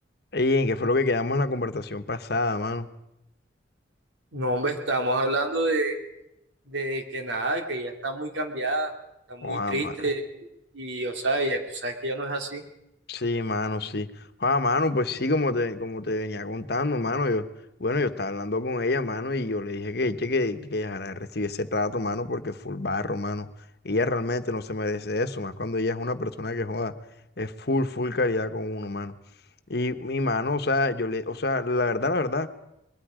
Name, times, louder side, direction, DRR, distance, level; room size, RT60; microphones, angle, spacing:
voice 1, 0.3-2.9 9.4-10.1 13.1-14.1 14.4-17.4 17.8-23.5 23.8-26.9 27.4-29.1 29.7-32.5, left 2 dB, 60° left, 9 dB, 1.2 m, -27 dB
voice 2, 4.3-6.0 6.7-8.9 9.3-10.3 10.7-12.6, right 1 dB, 80° right, 4 dB, 2.6 m, -28 dB
24.5 x 21.5 x 5.1 m, 0.88 s
head